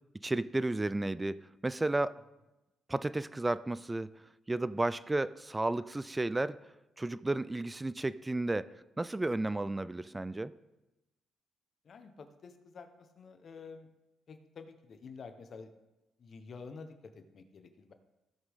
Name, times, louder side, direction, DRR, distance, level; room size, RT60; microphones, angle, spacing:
voice 1, 0.2-2.2 2.9-4.1 4.5-6.6 7.0-10.5, right 2 dB, 15° right, 17 dB, 0.4 m, -33 dB
voice 2, 11.8-13.9 14.3-15.7 16.2-17.9, left 4 dB, 50° left, 8 dB, 1.1 m, -49 dB
16.0 x 6.2 x 3.6 m, 1.0 s
cardioid pair, 90°, 0 cm